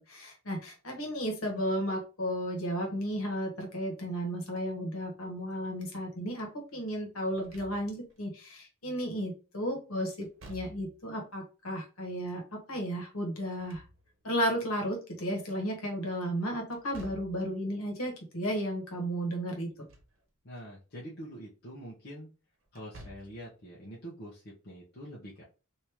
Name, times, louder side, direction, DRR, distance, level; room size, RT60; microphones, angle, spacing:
voice 1, 0.0-13.8 14.2-19.7, equal, 75° left, 2 dB, 1.3 m, -34 dB
Slam / Thump thud, 7.3-8.2 10.2-11.1 13.4-14.4 16.7-17.5 19.6-20.2 20.6-20.7 22.7-23.5, equal, 60° right, 1.0 m, -51 dB
voice 2, 20.4-22.3 22.7-25.4, equal, 50° left, -5 dB, 0.9 m, -45 dB
3.5 x 2.8 x 3.0 m, 0.33 s
head